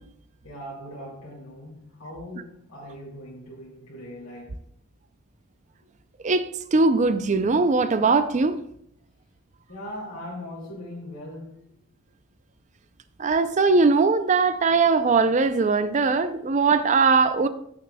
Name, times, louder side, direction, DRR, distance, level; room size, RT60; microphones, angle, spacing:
voice 1, 0.4-4.6 9.7-11.7, equal, 80° left, 2.3 m, -40 dB
voice 2, 6.2-8.6 13.2-17.5, right 4 dB, 35° right, 0.4 m, -20 dB
14.5 x 6.6 x 2.2 m
head